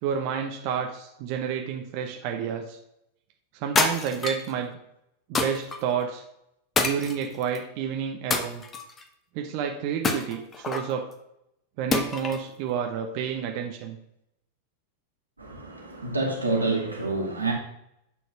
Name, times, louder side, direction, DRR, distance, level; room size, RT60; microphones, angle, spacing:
voice 1, 0.0-2.8 3.5-4.8 5.3-6.2 6.8-8.6 9.3-11.1 11.8-14.0, right 8 dB, 45° right, 0.9 m, -30 dB
sound 1, 3.8-4.5 5.4-5.8 6.8-7.6 8.3-9.0 10.0-10.9 11.9-12.5, left 4 dB, 20° left, 1.0 m, -27 dB
voice 2, 15.4-17.5, right 3 dB, 80° right, 2.3 m, -28 dB
9.5 x 4.6 x 5.7 m
figure-of-eight pair, 90°, 0 cm